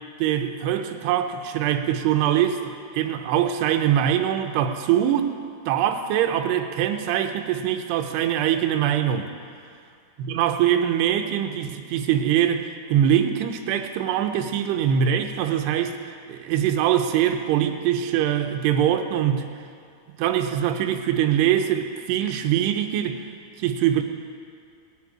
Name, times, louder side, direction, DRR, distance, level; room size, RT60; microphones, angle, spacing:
voice 1, 0.2-5.3 5.7-9.3 10.2-19.5 20.2-23.3 23.6-24.0, right 10 dB, 90° right, 6 dB, 2.8 m, -23 dB
19.0 x 9.9 x 4.9 m, 2.3 s
omnidirectional pair, 4.7 m